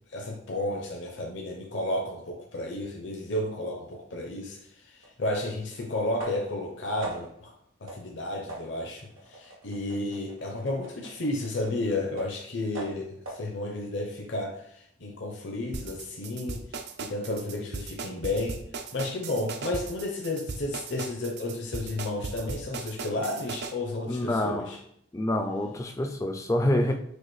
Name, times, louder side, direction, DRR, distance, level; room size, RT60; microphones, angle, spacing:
voice 1, 0.1-7.5 7.8-18.6 18.9-24.8, left 2 dB, 65° left, 0.7 m, -32 dB
sound 1, 5.0-5.1 6.2-6.6 7.0-7.5 7.9-8.1 8.5-12.4 12.7-13.5, right 1 dB, 85° right, 1.1 m, -43 dB
sound 2, 15.7-23.7, right 4 dB, 55° right, 0.4 m, -37 dB
voice 2, 24.1-24.7 25.1-26.9, left 1 dB, 15° left, 0.3 m, -27 dB
6.3 x 2.5 x 3.2 m
head